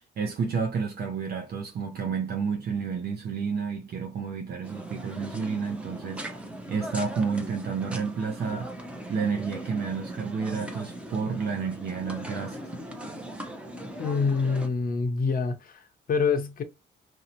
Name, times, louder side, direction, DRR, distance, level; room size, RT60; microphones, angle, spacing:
voice 1, 0.2-8.7 9.1-12.7, right 5 dB, 55° right, 0.5 m, -30 dB
sound 1, 4.6-14.7, right 1 dB, 5° right, 0.6 m, -39 dB
voice 2, 14.0-16.6, left 5 dB, 45° left, 0.6 m, -26 dB
2.7 x 2.0 x 2.8 m
cardioid pair, 90°, 20 cm